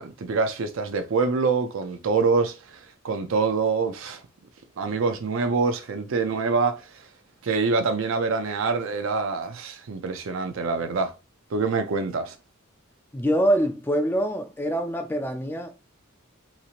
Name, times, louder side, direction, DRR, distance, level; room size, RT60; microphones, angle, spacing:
voice 1, 0.0-4.2 4.8-6.9 7.4-11.1 11.5-12.3, right 4 dB, 65° right, 0.4 m, -25 dB
voice 2, 13.1-15.7, equal, 10° left, 0.3 m, -24 dB
2.9 x 2.8 x 2.4 m
head